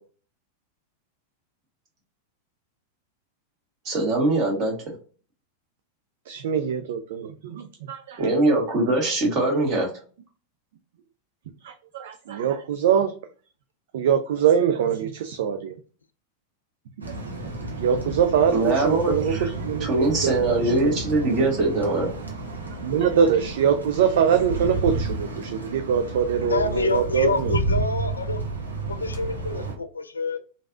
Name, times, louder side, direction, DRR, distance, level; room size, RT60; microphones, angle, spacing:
voice 1, 3.8-4.7 8.2-9.9 18.5-19.5 19.8-22.1, right 2 dB, 40° right, 1.6 m, -22 dB
voice 2, 6.3-8.2 11.6-13.1 13.9-15.7 17.8-20.4 20.8-21.0 22.8-27.3, right 8 dB, 60° right, 0.3 m, -23 dB
sound 1, 17.0-29.8, right 2 dB, 85° right, 0.7 m, -31 dB
voice 3, 26.4-28.4 29.0-30.4, left 3 dB, 85° left, 0.3 m, -27 dB
3.2 x 2.6 x 2.3 m
figure-of-eight pair, 90°, 0 cm